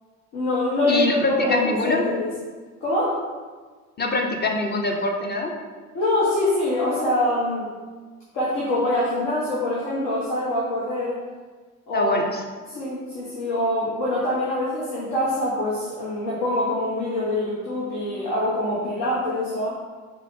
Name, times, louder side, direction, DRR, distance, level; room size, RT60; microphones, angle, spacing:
voice 1, 0.3-2.3 2.8-3.2 5.9-7.7 8.3-11.2 11.9-12.1 12.7-19.7, left 1 dB, 60° left, -7 dB, 1.3 m, -24 dB
voice 2, 0.9-2.0 4.0-5.5 11.9-12.4, left 2 dB, 25° left, 2 dB, 0.7 m, -24 dB
4.4 x 3.0 x 3.6 m, 1.4 s
hypercardioid pair, 60°, 40 cm